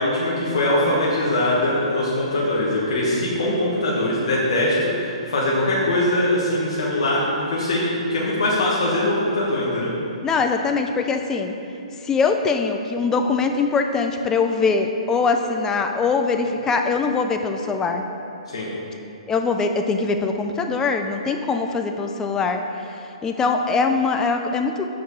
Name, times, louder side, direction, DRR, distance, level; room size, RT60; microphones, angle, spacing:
voice 1, 0.0-9.9 18.5-18.7, left 1 dB, 65° left, -6 dB, 1.4 m, -22 dB
voice 2, 10.2-11.5 12.0-18.1 19.3-22.6 23.2-24.8, left 4 dB, 15° left, 5 dB, 0.4 m, -22 dB
6.4 x 4.7 x 5.4 m, 2.7 s
hypercardioid pair, 135°, 3 cm